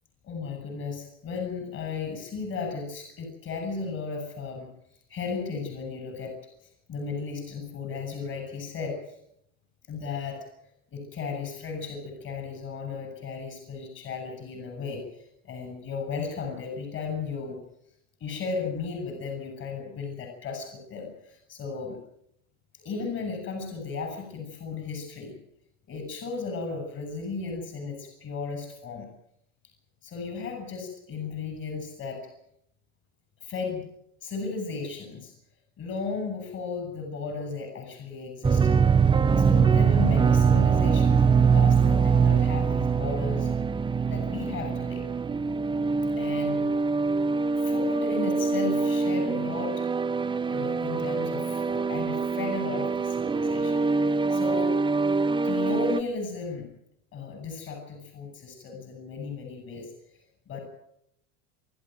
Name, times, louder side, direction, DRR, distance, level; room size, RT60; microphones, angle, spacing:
voice 1, 0.2-9.2 9.9-10.5 10.9-17.6 18.2-22.0 22.7-25.3 25.9-29.1 30.0-32.3 33.4-33.9 34.2-35.3 35.8-38.8 39.4-43.5 44.0-45.0 46.2-46.7 47.6-49.9 50.5-54.7 55.4-56.7 57.1-59.9 60.5-60.6, left 4 dB, 35° left, 4 dB, 7.1 m, -35 dB
sound 1, 38.4-56.0, right 5 dB, 10° right, 0.7 m, -23 dB
26.5 x 12.5 x 9.2 m, 0.74 s
supercardioid pair, 120°, 41 cm